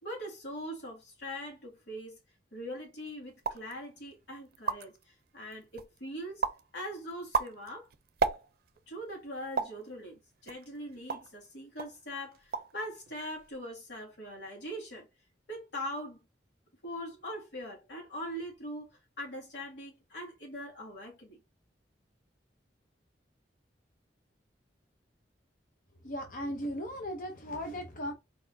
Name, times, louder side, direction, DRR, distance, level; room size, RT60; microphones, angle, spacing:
voice 1, 0.0-2.2 2.5-6.4 6.7-7.9 8.9-15.1 15.5-16.2 16.8-18.9 19.2-21.4, equal, 80° left, 2.4 m, -41 dB
sound 1, 3.4-3.7 4.2-4.3 4.5-5.0 5.5-6.0 6.4-6.7 7.1-8.8 9.6-9.8 10.5-11.4 11.8-12.0 12.3-12.8 13.1-13.6, right 5 dB, 60° right, 0.5 m, -33 dB
voice 2, 26.0-28.1, equal, 50° left, 0.8 m, -37 dB
4.3 x 4.2 x 2.7 m
head